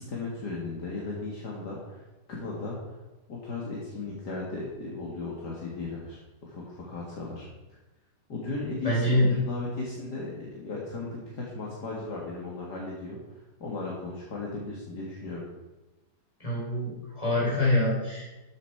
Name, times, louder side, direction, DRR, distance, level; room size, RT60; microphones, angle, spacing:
voice 1, 0.0-2.0 2.3-3.0 3.3-7.5 8.3-13.2 13.6-15.5, left 3 dB, 65° left, -4 dB, 2.4 m, -36 dB
voice 2, 8.8-9.3 16.4-18.3, left 1 dB, 20° left, -6 dB, 3.9 m, -25 dB
13.0 x 7.2 x 4.6 m, 1.1 s
omnidirectional pair, 1.9 m